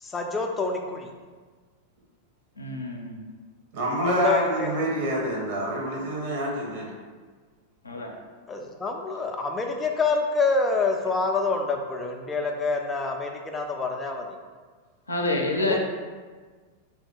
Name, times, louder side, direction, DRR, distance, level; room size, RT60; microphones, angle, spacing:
voice 1, 0.0-1.1 4.0-4.7 8.5-14.3 15.6-15.8, left 3 dB, 15° left, 2 dB, 0.4 m, -27 dB
voice 2, 2.6-3.2 7.8-8.1 15.1-15.8, left 2 dB, 80° left, 1 dB, 0.4 m, -27 dB
voice 3, 3.7-6.9, right 1 dB, 50° right, -2 dB, 0.9 m, -27 dB
3.4 x 2.4 x 3.6 m, 1.5 s
figure-of-eight pair, 90°, 0 cm